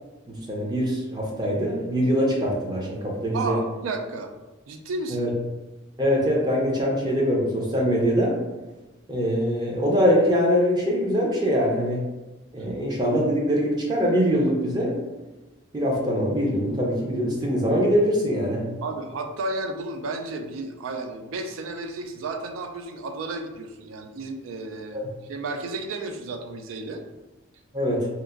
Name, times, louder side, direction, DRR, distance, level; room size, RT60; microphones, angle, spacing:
voice 1, 0.3-3.6 5.1-5.3 6.0-8.4 9.1-12.1 12.5-15.0 15.7-18.7 24.9-25.1 27.7-28.1, equal, 20° right, -2 dB, 0.4 m, -23 dB
voice 2, 3.3-4.3 4.7-5.3 18.8-25.0 25.3-27.0, right 3 dB, 85° right, 6 dB, 0.4 m, -32 dB
2.8 x 2.4 x 2.4 m, 1.1 s
head